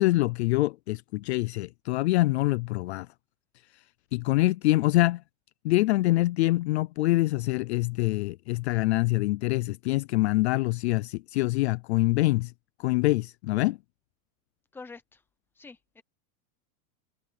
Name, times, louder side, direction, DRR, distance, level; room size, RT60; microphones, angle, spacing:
voice 1, 0.0-3.1 4.1-5.2 5.6-12.5 12.8-13.8, left 19 dB, 50° left, 0.4 m, -25 dB
voice 2, 14.7-15.2 15.6-16.0, left 4 dB, 5° left, 0.9 m, -46 dB
supercardioid pair, 180°, 44 cm